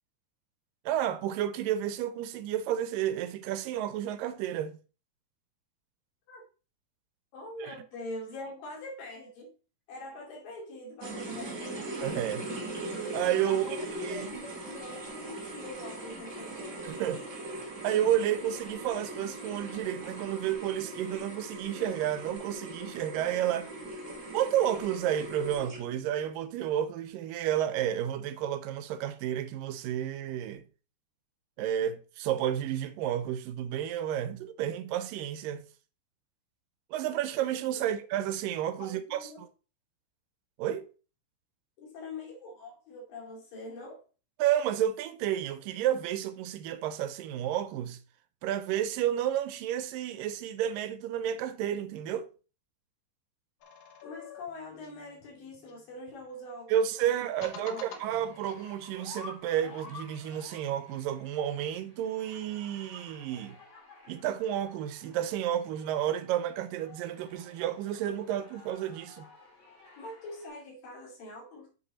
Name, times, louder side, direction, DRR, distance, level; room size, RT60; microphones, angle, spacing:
voice 1, 0.9-4.7 7.6-7.8 12.0-12.5 13.1-14.5 16.8-23.7 24.3-30.6 31.6-35.6 36.9-39.5 40.6-40.9 44.4-48.0 48.4-52.3 56.7-63.6 64.1-69.3, right 11 dB, 85° right, 2.4 m, -31 dB
voice 2, 7.3-9.5 9.9-11.9 13.4-16.7 37.7-37.9 38.8-39.4 41.8-44.0 54.0-57.1 57.5-58.0 70.0-71.7, left 2 dB, 85° left, 4.2 m, -44 dB
sound 1, 11.0-26.1, right 2 dB, 30° right, 1.6 m, -40 dB
sound 2, 53.6-56.4 57.1-59.0, left 6 dB, 65° left, 1.5 m, -50 dB
sound 3, 57.3-70.5, left 3 dB, 25° left, 1.9 m, -52 dB
7.6 x 5.4 x 4.2 m
omnidirectional pair, 3.8 m